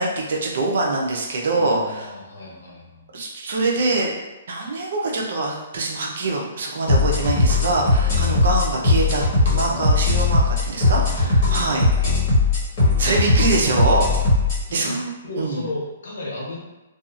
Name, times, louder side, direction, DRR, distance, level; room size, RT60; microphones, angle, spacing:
voice 1, 0.0-2.1 3.1-4.1 4.5-11.9 13.0-14.1 14.7-15.1 15.4-15.6, right 2 dB, 65° right, -1 dB, 0.6 m, -24 dB
voice 2, 1.5-3.1 11.9-12.2 14.7-15.0 15.2-16.6, left 2 dB, 80° left, -4 dB, 1.0 m, -34 dB
sound 1, 6.9-14.6, left 3 dB, 35° left, 1.2 m, -19 dB
2.7 x 2.4 x 2.4 m, 1.1 s
hypercardioid pair, 155°, 0 cm